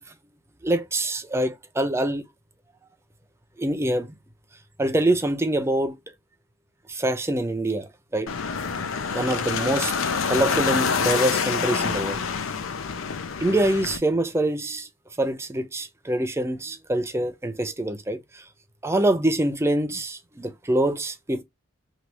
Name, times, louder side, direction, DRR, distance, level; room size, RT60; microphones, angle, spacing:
voice 1, 0.6-2.2 3.6-4.1 4.8-6.0 6.9-8.3 9.1-9.9 10.3-12.2 13.4-14.9 15.2-18.4 18.8-21.4, right 1 dB, 15° right, 0.5 m, -25 dB
sound 1, 8.3-14.0, left 6 dB, 80° left, 0.5 m, -26 dB
3.3 x 2.5 x 2.9 m
head